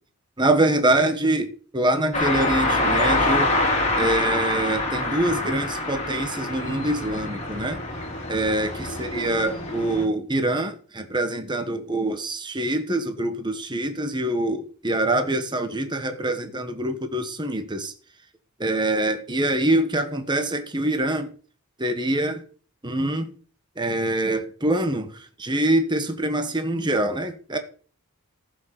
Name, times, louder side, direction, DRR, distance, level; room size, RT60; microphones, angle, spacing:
voice 1, 0.4-3.5 4.0-7.8 8.3-17.9 18.6-21.3 21.8-22.4 22.8-23.3 23.8-27.6, right 1 dB, 20° right, 1.4 m, -24 dB
sound 1, 2.1-10.0, left 2 dB, 30° left, 3.9 m, -25 dB
14.5 x 6.4 x 6.6 m
head